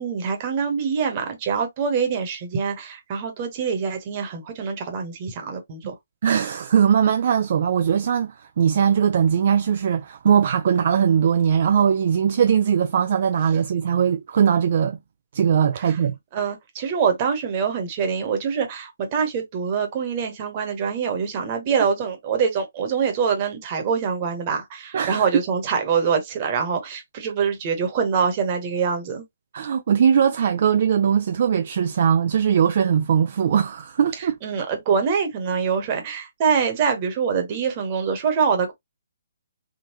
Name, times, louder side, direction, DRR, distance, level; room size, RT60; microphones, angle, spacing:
voice 1, 0.0-5.9 15.7-16.0 16.3-29.2 34.2-38.7, right 6 dB, 30° right, 1.2 m, -24 dB
voice 2, 6.2-15.0 15.3-16.1 24.9-25.2 29.5-34.4, right 8 dB, 50° right, 0.4 m, -20 dB
3.7 x 2.3 x 3.0 m
hypercardioid pair, 155°, 0 cm